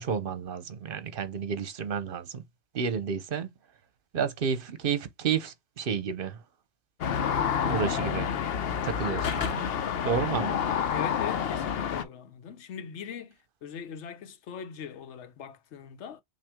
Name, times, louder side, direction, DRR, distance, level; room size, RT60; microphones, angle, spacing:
voice 1, 0.0-2.4 2.7-3.5 4.1-6.4 7.6-8.3 8.8-9.7 10.0-10.7, right 6 dB, 55° right, 0.9 m, -31 dB
sound 1, 7.0-12.0, left 7 dB, 65° left, 0.9 m, -29 dB
voice 2, 10.9-13.4 13.6-16.2, left 7 dB, 90° left, 1.0 m, -40 dB
5.8 x 2.5 x 3.5 m
omnidirectional pair, 1.1 m